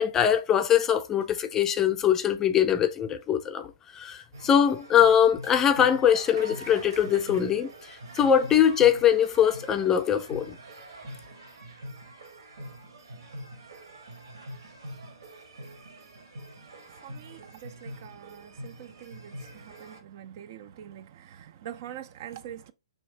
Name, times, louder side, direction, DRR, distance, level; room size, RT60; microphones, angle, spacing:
voice 1, 0.0-10.6, left 9 dB, 15° left, 0.4 m, -22 dB
sound 1, 4.3-20.0, right 1 dB, 70° right, 1.1 m, -44 dB
voice 2, 17.0-22.7, right 10 dB, 45° right, 0.3 m, -44 dB
3.1 x 2.8 x 4.1 m
figure-of-eight pair, 120°, 3 cm